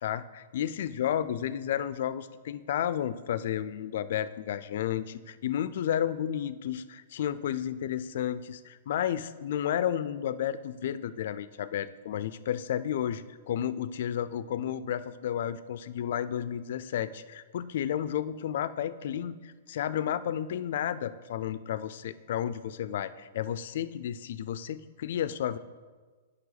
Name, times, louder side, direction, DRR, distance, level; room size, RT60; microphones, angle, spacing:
voice 1, 0.0-25.6, left 10 dB, 60° left, 15 dB, 0.4 m, -32 dB
9.5 x 5.3 x 4.0 m, 1.4 s
hypercardioid pair, 160°, 0 cm